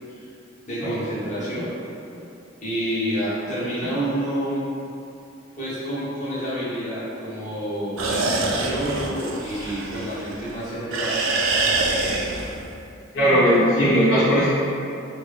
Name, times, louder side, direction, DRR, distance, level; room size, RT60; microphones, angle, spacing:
voice 1, 0.6-1.7 2.6-4.6 5.6-11.2, right 1 dB, 40° left, -11 dB, 1.2 m, -28 dB
sound 1, 8.0-10.5 10.9-12.7, right 3 dB, 85° right, 0.4 m, -25 dB
voice 2, 13.1-14.5, equal, 65° left, -12 dB, 0.9 m, -18 dB
4.3 x 2.2 x 3.3 m, 2.6 s
head